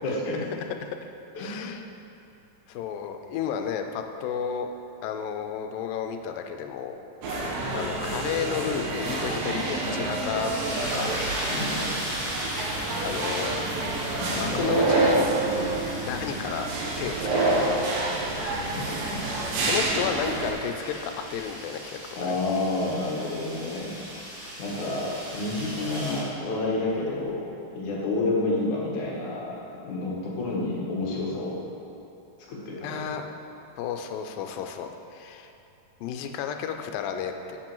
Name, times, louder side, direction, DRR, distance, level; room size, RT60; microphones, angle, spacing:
voice 1, 0.0-0.4 1.4-1.7 11.5-12.0 14.2-14.9 18.8-19.3 20.0-20.1 22.2-24.0 24.6-27.5 27.7-29.6 29.8-31.7 32.5-33.1, left 2 dB, 65° left, -4 dB, 2.6 m, -29 dB
voice 2, 1.4-1.8 2.7-4.7 5.0-7.0 7.7-10.5 10.9-11.2 13.0-13.5 14.4-15.2 15.5-16.7 17.0-17.8 19.6-22.4 32.8-33.3 33.8-35.5 36.0-37.6, left 8 dB, 90° left, 5 dB, 2.3 m, -32 dB
sound 1, 7.2-20.5, right 2 dB, 90° right, 2.8 m, -28 dB
sound 2, 10.4-26.3, equal, 50° right, 3.0 m, -37 dB
10.5 x 7.5 x 3.0 m, 2.8 s
omnidirectional pair, 3.9 m